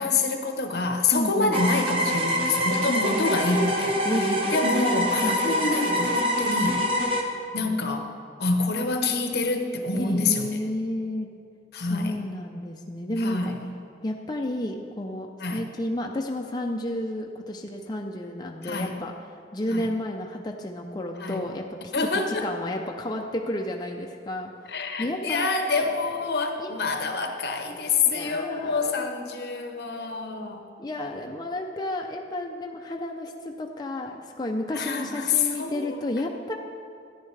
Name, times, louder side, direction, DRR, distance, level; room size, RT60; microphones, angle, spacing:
voice 1, 0.0-6.9 7.5-8.1 8.4-10.6 11.7-12.2 13.2-13.7 15.4-15.6 18.6-19.0 19.7-19.9 21.2-21.4 21.9-22.5 24.7-30.6 34.7-36.0, left 3 dB, 65° left, 5 dB, 0.9 m, -27 dB
voice 2, 1.1-1.6 2.9-3.1 4.0-4.5 5.2-5.6 9.9-11.3 11.8-13.6 14.0-19.1 19.5-25.5 25.8-26.0 26.6-26.7 28.0-29.1 30.8-36.5, left 1 dB, 25° left, 1 dB, 0.4 m, -31 dB
sound 1, 1.5-7.2, equal, 30° right, 1.0 m, -25 dB
14.0 x 9.7 x 3.2 m, 2.4 s
head